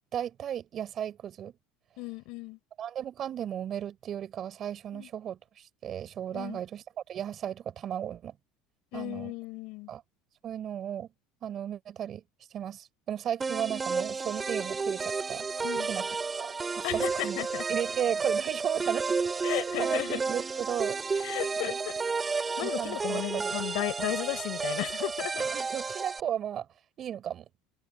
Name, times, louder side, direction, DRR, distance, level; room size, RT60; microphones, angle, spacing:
voice 1, 0.1-1.5 2.8-8.4 8.9-9.3 9.9-10.0 10.4-11.1 11.4-12.2 12.5-15.4 15.9-16.0 16.4-17.4 17.7-21.0 21.6-21.8 22.6-23.5 24.0-24.1 25.3-26.7 27.0-27.4, right 10 dB, 40° right, 4.1 m, -35 dB
voice 2, 2.0-2.6 4.9-5.1 6.3-6.6 8.9-9.9 15.6-15.9 16.8-17.6 19.4-20.2 21.2-21.7 22.6-25.4, left 23 dB, 70° left, 4.1 m, -34 dB
sound 1, 13.4-26.2, right 4 dB, 20° right, 3.0 m, -32 dB
supercardioid pair, 110°, 0 cm